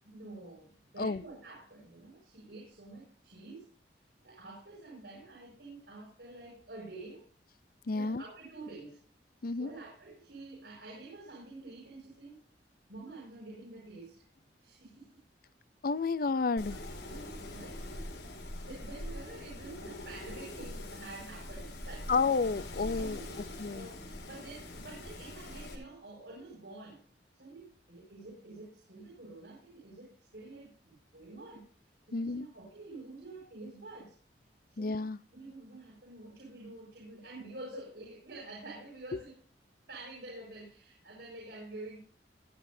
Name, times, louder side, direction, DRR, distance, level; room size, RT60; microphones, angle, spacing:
voice 1, 0.0-3.7 4.2-7.2 7.9-9.0 9.6-12.4 12.9-14.2 14.6-15.2 17.0-17.9 18.6-22.2 23.0-23.4 23.7-27.0 27.3-31.7 32.1-34.1 34.7-34.9 35.3-39.3 39.9-42.0, right 2 dB, 80° right, 7.3 m, -48 dB
voice 2, 7.9-8.2 9.4-9.7 15.8-16.8 22.1-23.2 23.6-23.9 32.1-32.5 34.8-35.2, left 4 dB, 55° left, 0.5 m, -31 dB
Wind, 16.6-25.7, left 1 dB, 90° left, 7.2 m, -43 dB
22.0 x 10.5 x 2.7 m
head